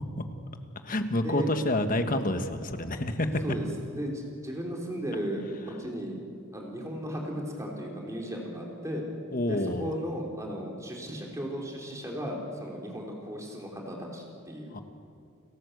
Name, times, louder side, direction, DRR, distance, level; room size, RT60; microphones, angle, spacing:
voice 1, 0.8-3.3 9.3-9.9 14.7-14.8, left 1 dB, 40° left, 8 dB, 1.4 m, -28 dB
voice 2, 3.4-6.2 6.5-9.0 9.5-14.8, equal, 15° right, -1 dB, 3.7 m, -35 dB
29.5 x 13.5 x 8.1 m, 2.6 s
head